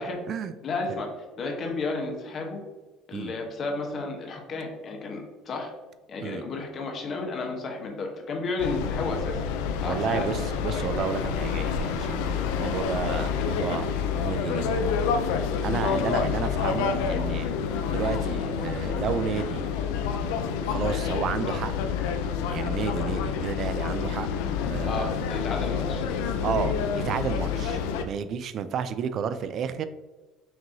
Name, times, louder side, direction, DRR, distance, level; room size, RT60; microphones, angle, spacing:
voice 1, 0.6-2.6 3.1-5.7 6.1-9.4 9.8-10.3 15.8-16.0 24.9-26.0, left 3 dB, 45° left, 2 dB, 1.0 m, -32 dB
sound 1, 8.6-28.0, left 6 dB, 90° left, 0.4 m, -28 dB
voice 2, 9.8-15.0 15.6-17.5 17.9-19.7 20.7-21.7 22.5-24.3 24.7-25.1 26.4-29.8, right 7 dB, 50° right, 12 dB, 0.3 m, -31 dB
5.9 x 2.7 x 2.7 m, 1.2 s
cardioid pair, 115°, 0 cm